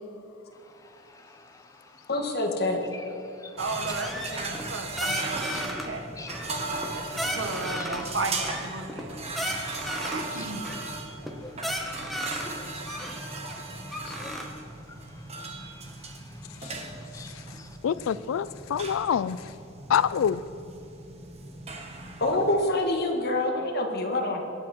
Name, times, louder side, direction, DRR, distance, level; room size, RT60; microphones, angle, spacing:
voice 1, 0.5-2.1 2.9-3.6 4.3-4.5 5.5-5.9 6.2-8.4 9.1-10.7 11.2-17.8, left 3 dB, 15° left, 5 dB, 0.9 m, -49 dB
voice 2, 2.1-2.8 4.5-4.6 14.1-14.2 22.2-24.4, left 2 dB, 50° left, 2 dB, 1.9 m, -26 dB
sound 1, 3.6-22.6, right 3 dB, 30° right, 1.4 m, -38 dB
voice 3, 3.6-6.1 6.9-7.0 7.3-9.1 9.9-10.6, right 3 dB, 65° right, 4 dB, 1.6 m, -34 dB
sound 2, 4.0-4.7 5.0-5.9 6.3-6.9 7.2-8.0 8.3-10.3 10.6-10.9 11.2-11.3 11.6-12.5 12.9-14.4, equal, ahead, 1.2 m, -34 dB
voice 4, 17.8-19.4 19.9-20.4, left 8 dB, 75° left, 17 dB, 0.3 m, -26 dB
24.5 x 9.9 x 4.5 m, 2.8 s
head